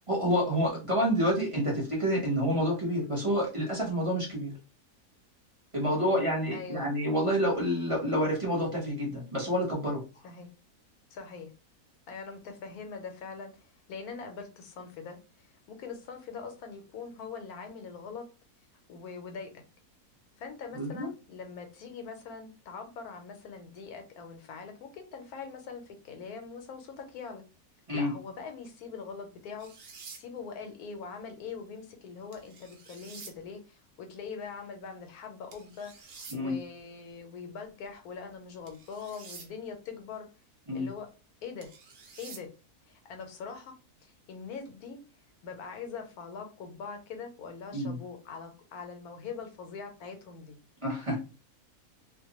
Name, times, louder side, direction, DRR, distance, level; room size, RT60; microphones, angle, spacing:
voice 1, 0.1-4.5 5.7-10.0 20.7-21.1 27.9-28.1 36.3-36.6 40.7-40.9 47.7-48.0 50.8-51.2, equal, 25° right, -3 dB, 0.8 m, -28 dB
voice 2, 5.8-6.9 10.2-10.5 11.1-11.5 12.1-18.2 18.9-19.5 20.4-27.4 27.9-29.7 30.1-40.3 40.7-41.1 41.4-41.7 42.2-42.5 42.9-43.7 44.0-45.0 45.4-50.6, left 5 dB, 80° left, 5 dB, 1.1 m, -42 dB
sound 1, 29.6-30.2 32.3-33.3 35.5-36.4 38.7-39.5 41.6-42.4, right 5 dB, 65° right, 0.5 m, -48 dB
2.6 x 2.1 x 2.8 m, 0.32 s
omnidirectional pair, 1.6 m